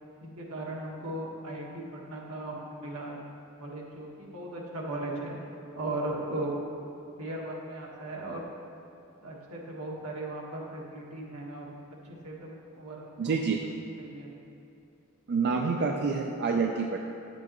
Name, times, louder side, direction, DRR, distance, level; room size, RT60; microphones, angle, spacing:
voice 1, 0.2-3.2 3.6-5.3 5.7-6.6 7.2-8.4 9.2-11.7 12.0-13.3 14.0-14.3 15.5-15.9, right 1 dB, 85° right, -2 dB, 1.4 m, -37 dB
voice 2, 13.2-13.6 15.3-17.0, right 5 dB, 50° right, 2 dB, 0.4 m, -27 dB
9.4 x 7.7 x 3.0 m, 2.8 s
head